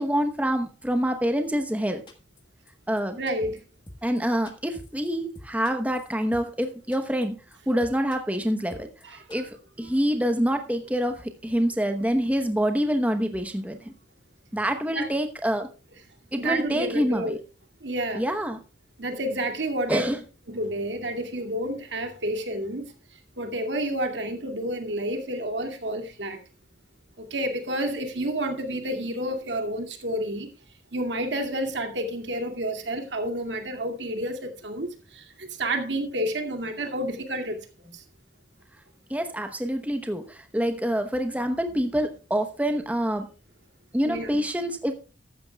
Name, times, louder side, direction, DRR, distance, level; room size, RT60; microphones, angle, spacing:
voice 1, 0.0-2.0 2.9-3.2 4.0-7.4 7.7-13.9 14.5-15.7 16.3-17.4 18.2-18.6 19.9-20.2 39.1-43.3 43.9-44.9, equal, 10° right, 0.9 m, -26 dB
sound 1, 2.1-2.4 2.7-2.8 3.0-3.1 3.3-3.6 3.9-4.2 4.5-5.1 5.4-6.7 6.9-7.3 7.5-7.6 7.8-8.4 8.7-9.0 9.3-9.4, left 1 dB, 25° left, 1.5 m, -45 dB
voice 2, 3.2-3.6 9.0-9.4 14.9-15.1 16.4-17.4 17.8-18.2 19.0-20.1 20.5-22.9 23.4-26.4 27.2-30.5 30.9-38.0 44.0-44.4, right 1 dB, 80° right, 2.3 m, -30 dB
14.5 x 12.5 x 2.3 m
head